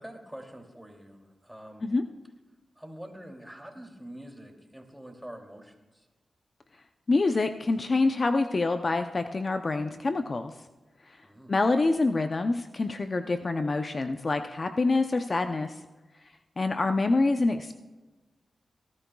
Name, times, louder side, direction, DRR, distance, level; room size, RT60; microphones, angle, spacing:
voice 1, 0.0-1.9 2.8-6.1 11.2-11.5 16.7-16.8, right 1 dB, 5° right, 2 dB, 2.7 m, -46 dB
voice 2, 7.1-10.5 11.5-15.7 16.6-17.8, left 3 dB, 50° left, 7 dB, 0.6 m, -26 dB
18.5 x 13.0 x 2.3 m, 1.2 s
cardioid pair, 55°, 0 cm